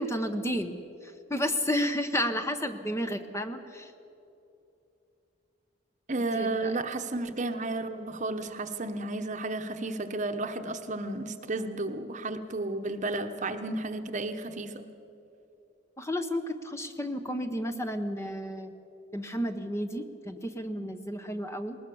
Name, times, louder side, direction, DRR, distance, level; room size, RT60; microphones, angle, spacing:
voice 1, 0.0-3.9 6.3-6.7 16.0-18.7 19.1-21.8, equal, 15° left, 8 dB, 0.8 m, -32 dB
voice 2, 6.1-14.8, right 2 dB, 40° right, 8 dB, 1.0 m, -32 dB
20.0 x 19.5 x 7.0 m, 2.8 s
head